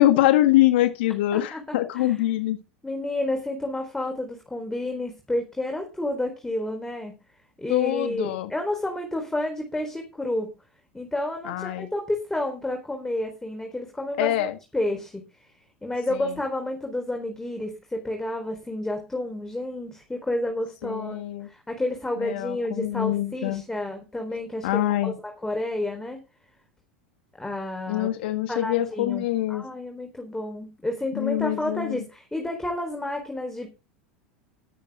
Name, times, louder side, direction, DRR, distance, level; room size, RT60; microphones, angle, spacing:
voice 1, 0.0-2.6 7.7-8.5 11.5-11.9 14.2-14.5 16.1-16.3 20.8-21.5 22.2-23.6 24.6-25.1 27.9-29.6 31.1-32.0, left 15 dB, 60° left, 9 dB, 1.6 m, -24 dB
voice 2, 1.3-2.2 2.8-7.2 7.6-10.5 10.9-14.3 14.7-15.2 15.8-26.2 27.4-28.1 28.5-33.7, left 1 dB, 5° left, 4 dB, 4.3 m, -30 dB
13.5 x 11.0 x 3.8 m, 0.28 s
figure-of-eight pair, 80°, 6 cm